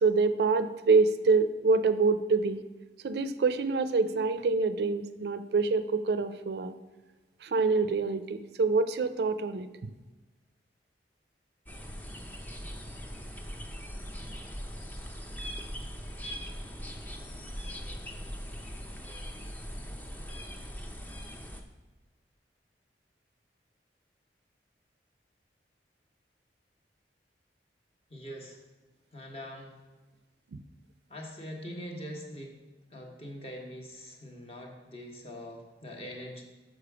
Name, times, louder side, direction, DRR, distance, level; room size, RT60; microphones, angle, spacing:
voice 1, 0.0-2.6 3.0-6.7 7.4-9.7, right 4 dB, 65° right, 12 dB, 0.4 m, -26 dB
sound 1, 11.7-21.6, equal, 10° left, 0.5 m, -40 dB
voice 2, 28.1-28.6 29.1-29.7 31.1-32.5 32.9-36.4, equal, 35° left, 0 dB, 1.3 m, -43 dB
6.7 x 6.3 x 4.8 m, 1.2 s
head